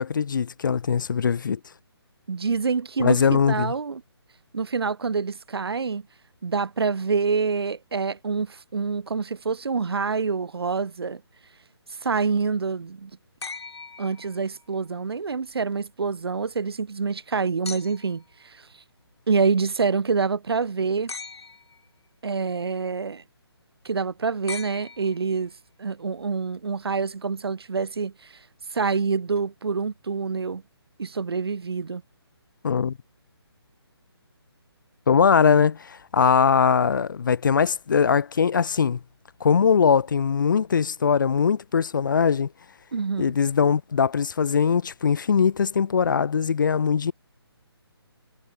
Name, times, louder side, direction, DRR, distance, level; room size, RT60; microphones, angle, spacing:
voice 1, 0.0-1.6 3.0-3.7 32.6-33.0 35.1-39.0 39.4-42.5 43.2-47.1, left 6 dB, 50° left, 0.4 m, -21 dB
voice 2, 2.3-4.0 4.5-6.0 6.4-11.2 12.0-13.1 14.0-18.6 19.3-21.1 22.2-23.2 23.8-25.5 25.8-28.1 28.7-30.6 31.0-32.0 42.9-43.3, right 5 dB, 70° right, 1.5 m, -26 dB
sound 1, 13.4-14.8 17.6-18.3 21.1-21.9 24.5-25.5 27.1-27.2, left 4 dB, 75° left, 1.7 m, -39 dB
hypercardioid pair, 165°, 14 cm